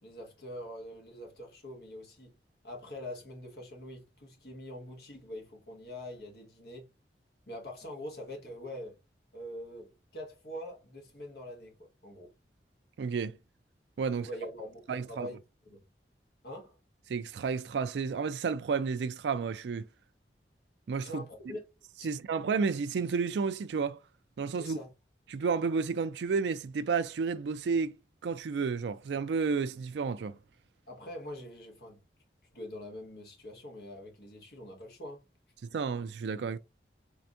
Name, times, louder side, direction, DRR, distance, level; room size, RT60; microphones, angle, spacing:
voice 1, 0.0-2.3 2.6-6.9 7.5-9.0 9.3-11.7 12.0-12.3 14.1-15.4 15.6-15.8 16.4-16.8 21.0-21.6 22.0-22.1 24.6-24.9 30.9-32.0 32.5-35.2, left 1 dB, 65° left, 1.7 m, -44 dB
voice 2, 13.0-13.4 14.0-14.3 14.9-15.3 17.1-19.9 20.9-21.2 22.0-24.0 24.4-24.8 25.3-28.0 28.2-30.4 35.7-36.6, right 5 dB, 80° right, 0.4 m, -31 dB
4.6 x 3.4 x 2.6 m
head